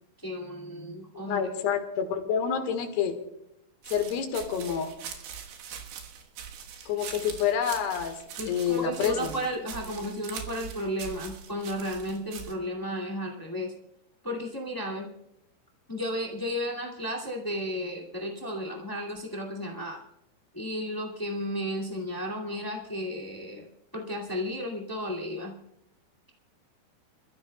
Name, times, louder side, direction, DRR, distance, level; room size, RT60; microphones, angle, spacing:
voice 1, 0.2-1.4 8.4-13.7 14.2-15.1 15.9-20.0 20.5-23.7 23.9-25.5, equal, 20° left, -1 dB, 0.5 m, -33 dB
voice 2, 1.3-3.2 3.9-4.9 6.9-8.2 8.5-9.4, left 7 dB, 75° left, 6 dB, 3.5 m, -28 dB
sound 1, 3.8-12.5, right 8 dB, 90° right, 3.7 m, -42 dB
27.5 x 14.5 x 2.3 m, 0.84 s
omnidirectional pair, 4.9 m